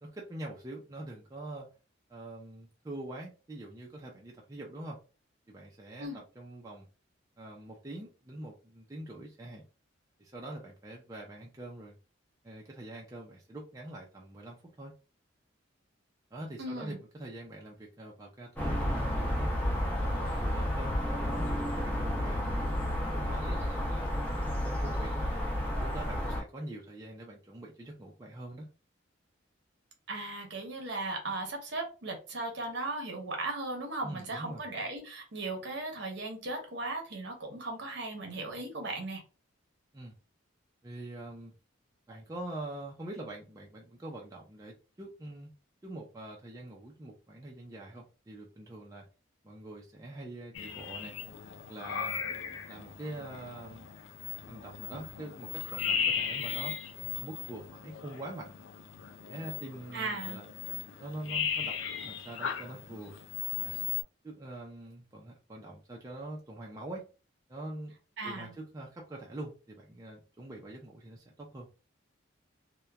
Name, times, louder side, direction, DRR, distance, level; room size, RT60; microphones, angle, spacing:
voice 1, 0.0-1.7 2.1-5.0 5.5-6.9 7.4-9.7 10.2-12.0 12.4-14.9 16.3-19.5 20.0-22.4 22.9-24.1 24.4-25.1 25.7-28.7 34.0-34.6 39.9-40.1 40.8-41.5 42.1-45.5 45.8-49.1 49.4-51.2 51.6-52.2 52.7-53.9 54.5-56.8 57.2-58.6 59.2-60.5 61.0-61.8 62.0-63.2 63.6-63.9 64.2-67.0 67.5-67.9 68.2-71.7, right 1 dB, 15° right, -2 dB, 0.4 m, -44 dB
voice 2, 16.6-17.0 30.1-39.2 59.9-60.4 68.2-68.5, right 2 dB, 60° right, 2 dB, 0.8 m, -37 dB
sound 1, 18.6-26.4, equal, 10° left, 0.7 m, -31 dB
sound 2, 50.5-64.0, left 7 dB, 75° left, 0.4 m, -37 dB
2.8 x 2.1 x 2.3 m, 0.33 s
head